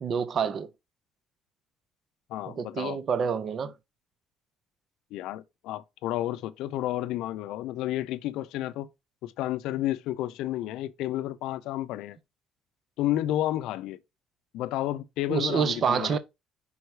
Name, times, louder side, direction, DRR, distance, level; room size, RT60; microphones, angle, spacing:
voice 1, 0.0-0.7 2.6-3.7 15.3-16.2, right 6 dB, 40° right, 0.6 m, -27 dB
voice 2, 2.3-3.0 5.1-8.9 9.2-12.2 13.0-14.0 14.5-16.2, left 14 dB, 90° left, 0.4 m, -31 dB
5.5 x 4.5 x 4.7 m
cardioid pair, 155°, 0 cm